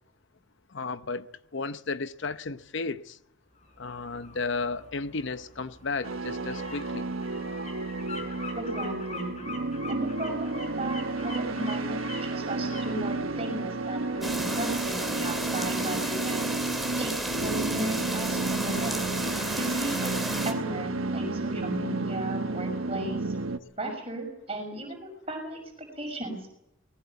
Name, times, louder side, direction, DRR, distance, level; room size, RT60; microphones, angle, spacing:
voice 1, 0.7-3.2 3.8-7.1, left 4 dB, 60° left, 0.7 m, -33 dB
sound 1, 3.6-16.4 16.8-16.9, left 2 dB, 35° left, 5.7 m, -44 dB
sound 2, 6.0-23.6, right 3 dB, 80° right, 1.2 m, -31 dB
voice 2, 8.5-9.3 9.9-16.5 17.0-19.0 19.5-20.1 20.4-23.3 23.8-26.5, right 1 dB, 30° right, 6.0 m, -36 dB
sound 3, 14.2-20.5, right 1 dB, ahead, 3.0 m, -33 dB
20.5 x 19.0 x 8.3 m
head